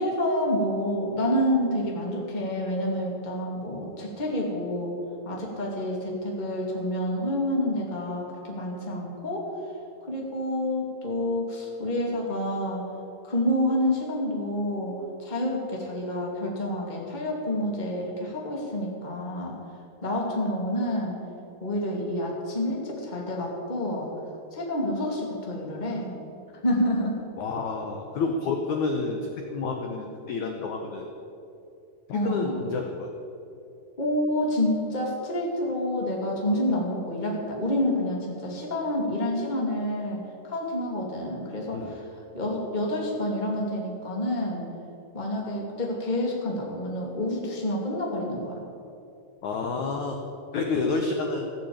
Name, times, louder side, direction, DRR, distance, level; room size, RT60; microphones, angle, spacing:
voice 1, 0.0-5.0 5.2-9.5 10.1-12.8 13.2-14.9 15.2-19.6 20.0-21.2 21.6-24.1 24.5-26.1 26.6-27.2 32.1-32.6 34.0-42.0 42.3-44.6 45.1-48.6, left 1 dB, 15° left, -2 dB, 1.7 m, -28 dB
voice 2, 27.4-31.1 32.1-33.1 41.7-41.9 49.4-50.2 50.5-51.5, left 4 dB, 70° left, 3 dB, 1.8 m, -29 dB
15.0 x 8.6 x 8.8 m, 2.8 s
omnidirectional pair, 4.7 m